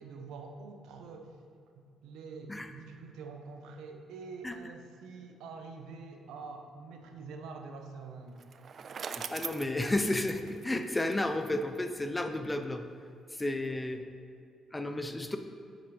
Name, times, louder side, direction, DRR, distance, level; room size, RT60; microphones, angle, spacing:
voice 1, 0.0-1.4 1.7-8.4 8.9-9.0 13.6-13.9, right 4 dB, 90° right, 4 dB, 0.7 m, -46 dB
Bicycle, 8.4-11.6, right 6 dB, 50° right, 0.3 m, -42 dB
voice 2, 9.3-12.8 13.4-14.0 14.7-15.4, left 1 dB, 15° left, 7 dB, 0.6 m, -32 dB
7.8 x 5.0 x 4.7 m, 2.4 s
cardioid pair, 90°, 0 cm